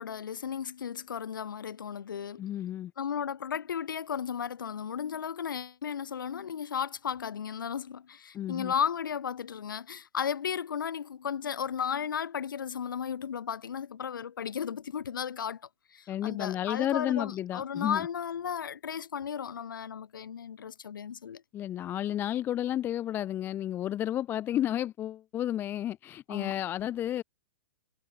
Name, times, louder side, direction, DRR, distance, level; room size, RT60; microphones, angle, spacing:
voice 1, 0.0-2.4 3.0-15.6 15.9-21.4 26.3-26.5, left 8 dB, 85° left, 1.1 m, -34 dB
voice 2, 2.4-2.9 8.3-8.7 16.1-18.1 21.5-27.2, left 12 dB, 20° left, 0.4 m, -32 dB
hypercardioid pair, 135°, 11 cm